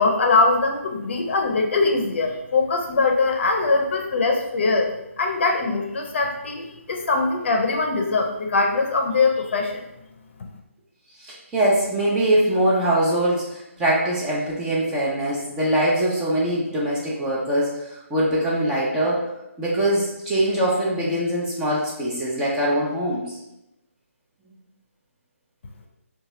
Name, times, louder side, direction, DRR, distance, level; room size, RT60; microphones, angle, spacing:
voice 1, 0.0-9.8, left 3 dB, 55° left, 3 dB, 0.5 m, -22 dB
voice 2, 11.2-19.2 19.6-23.4, right 1 dB, 10° right, -6 dB, 0.3 m, -22 dB
2.9 x 2.2 x 2.9 m, 0.90 s
hypercardioid pair, 155°, 8 cm